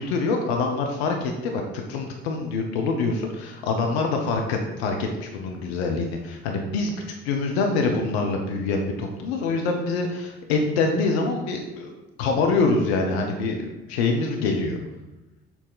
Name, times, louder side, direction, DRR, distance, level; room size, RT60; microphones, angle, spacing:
voice 1, 0.0-6.9 7.2-11.9 12.2-14.8, left 3 dB, 90° left, 2 dB, 0.7 m, -25 dB
7.1 x 4.2 x 3.9 m, 1.1 s
hypercardioid pair, 55°, 31 cm